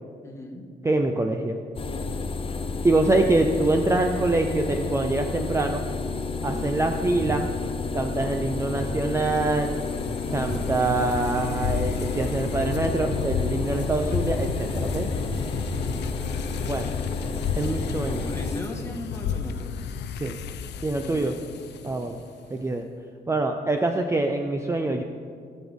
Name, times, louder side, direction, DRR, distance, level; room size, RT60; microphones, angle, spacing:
voice 1, 0.2-0.7 6.5-6.6 10.4-10.5 15.6-15.9 18.1-19.7 21.0-21.4 21.8-22.0, left 2 dB, 15° left, 1 dB, 1.6 m, -38 dB
voice 2, 0.8-1.6 2.8-5.9 6.4-7.5 7.9-9.8 10.3-15.1 16.6-16.9 17.6-18.3 20.1-20.4 20.8-21.3 21.8-22.2 22.5-22.9 23.3-25.0, right 2 dB, 15° right, 4 dB, 0.5 m, -25 dB
sound 1, 1.8-18.6, left 4 dB, 30° left, 0.6 m, -31 dB
sound 2, 5.7-16.6 17.0-20.4 20.6-20.9 21.2-22.1 22.3-22.5, right 3 dB, 45° right, 0.9 m, -39 dB
sound 3, 8.9-22.3, left 8 dB, 80° left, 0.6 m, -33 dB
18.0 x 6.2 x 3.6 m, 2.2 s
cardioid pair, 105°, 17 cm